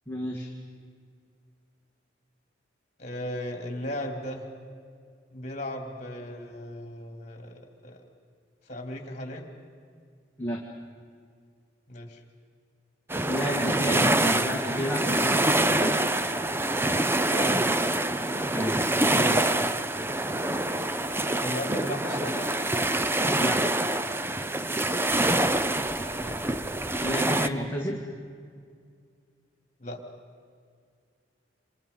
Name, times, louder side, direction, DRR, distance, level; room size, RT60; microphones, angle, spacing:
voice 1, 0.1-0.5 10.4-10.6 13.3-15.9 18.5-18.8 19.1-19.4 23.4-23.6 27.0-28.0, equal, 10° left, -2 dB, 2.0 m, -30 dB
voice 2, 3.0-4.5 5.3-8.0 8.7-9.5 11.9-12.2 17.3-17.6 21.4-22.5 26.2-26.5 29.8-30.0, left 1 dB, 40° left, 4 dB, 3.0 m, -36 dB
sound 1, 13.1-27.5, right 1 dB, 10° right, 0.6 m, -26 dB
27.5 x 26.5 x 5.5 m, 2.2 s
head